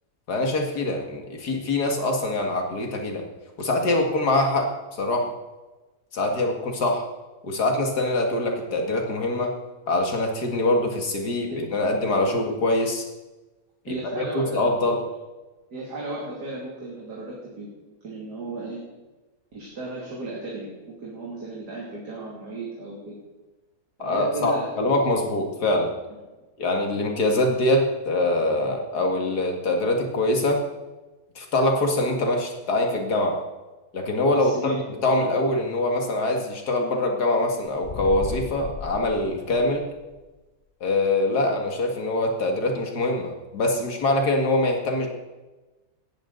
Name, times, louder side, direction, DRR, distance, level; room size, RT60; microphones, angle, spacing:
voice 1, 0.3-3.2 3.6-5.3 6.1-7.0 7.4-9.5 9.9-13.0 13.9-15.0 24.0-25.9 26.6-30.6 31.4-33.4 33.9-39.9 40.8-45.1, left 2 dB, 80° left, 2 dB, 2.6 m, -24 dB
voice 2, 11.4-11.7 12.3-12.4 13.9-14.7 15.7-17.7 18.0-18.8 19.5-20.7 21.0-23.2 24.0-24.7 26.1-26.2 34.3-35.4, right 2 dB, 80° right, -4 dB, 3.3 m, -35 dB
sound 1, 37.7-40.1, left 6 dB, 50° left, 0.4 m, -35 dB
17.5 x 13.5 x 4.0 m, 1.1 s
omnidirectional pair, 1.7 m